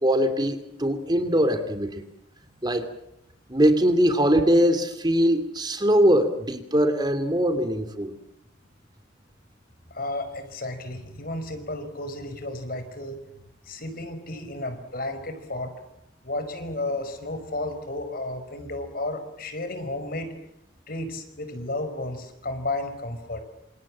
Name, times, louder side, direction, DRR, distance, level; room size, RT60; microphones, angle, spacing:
voice 1, 0.0-2.0 2.6-2.9 3.5-8.1, equal, 25° right, 8 dB, 2.7 m, -22 dB
voice 2, 9.9-13.2 13.7-15.8 16.2-20.3 20.9-23.4, left 2 dB, 55° left, 9 dB, 5.3 m, -32 dB
28.5 x 27.5 x 7.5 m, 0.79 s
head